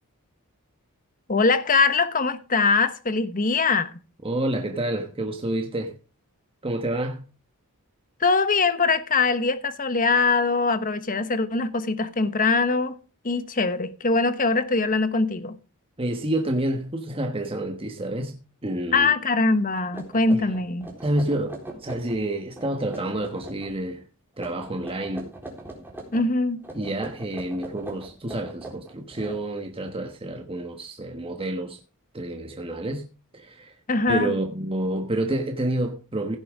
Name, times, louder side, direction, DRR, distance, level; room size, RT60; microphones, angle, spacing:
voice 1, 1.3-3.9 8.2-12.9 13.2-15.6 18.9-20.9 26.1-26.6 33.9-34.3, left 3 dB, 40° left, 1.2 m, -22 dB
voice 2, 4.2-6.0 6.6-7.2 16.0-19.1 20.3-20.4 21.0-24.0 24.4-25.3 26.7-31.8 32.1-33.0 33.3-33.7 34.1-36.4, right 1 dB, 25° right, 1.2 m, -29 dB
sound 1, 19.5-19.6 19.9-22.2 22.5-23.7 24.3-26.3 26.6-29.9, right 1 dB, 10° right, 4.0 m, -41 dB
16.0 x 8.6 x 3.6 m
head